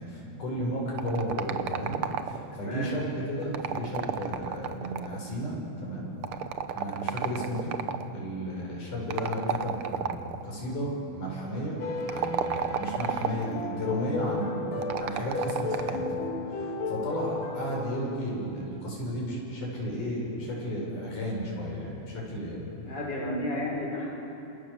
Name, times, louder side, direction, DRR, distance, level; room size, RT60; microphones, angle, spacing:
voice 1, 0.0-2.0 2.2-6.1 6.7-7.7 8.1-11.8 12.1-16.0 16.4-22.7, equal, 75° left, -2 dB, 8.0 m, -33 dB
sound 1, 1.0-2.6 3.4-5.3 6.2-8.1 9.1-10.4 12.0-13.6 14.8-16.2, right 9 dB, 80° right, 1.2 m, -32 dB
voice 2, 2.5-2.9 22.8-24.1, left 1 dB, 30° left, -3 dB, 6.3 m, -32 dB
sound 2, 11.8-17.6, left 3 dB, 90° left, 4.5 m, -34 dB
29.5 x 27.5 x 7.1 m, 3.0 s
omnidirectional pair, 3.7 m